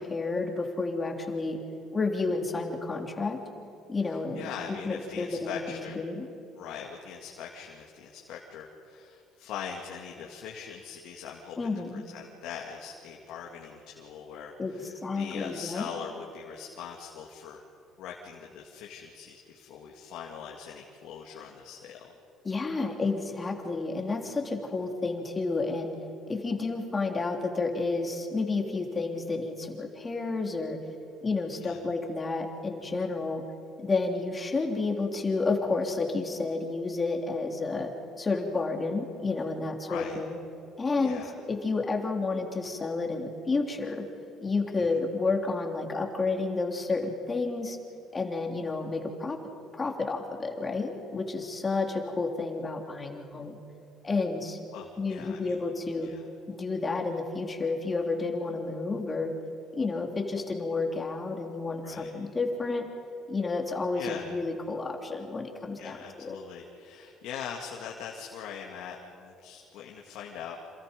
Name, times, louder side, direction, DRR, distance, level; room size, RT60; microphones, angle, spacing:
voice 1, 0.0-1.6 1.9-3.4 3.9-4.5 4.8-6.3 11.6-12.0 14.6-14.8 15.0-15.9 22.4-26.0 26.3-30.8 31.2-33.4 33.8-40.4 40.8-41.2 41.5-44.1 44.4-47.8 48.1-49.4 49.7-53.6 54.0-54.6 55.0-56.1 56.5-59.3 59.7-62.9 63.3-66.4, left 3 dB, 25° left, 3 dB, 3.4 m, -30 dB
voice 2, 4.1-6.0 6.6-17.6 18.0-22.0 31.6-31.8 39.9-40.2 41.0-41.3 44.8-44.9 54.7-55.6 56.0-56.3 61.8-62.1 63.9-64.2 65.8-70.6, left 7 dB, 75° left, -1 dB, 2.3 m, -41 dB
27.5 x 27.0 x 5.4 m, 2.6 s
supercardioid pair, 85°, 0 cm